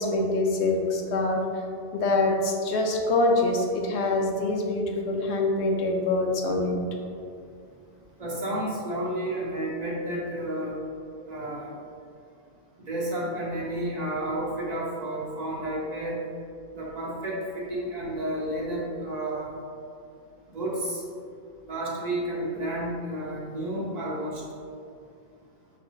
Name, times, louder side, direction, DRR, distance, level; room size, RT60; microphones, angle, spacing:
voice 1, 0.0-1.4 1.9-6.8, left 2 dB, 75° left, 0 dB, 0.9 m, -25 dB
voice 2, 8.2-10.8 11.3-11.7 12.9-16.2 16.7-19.6 20.5-21.0 21.7-24.4, right 1 dB, 45° right, -5 dB, 0.7 m, -31 dB
5.9 x 2.7 x 3.0 m, 2.3 s
omnidirectional pair, 1.1 m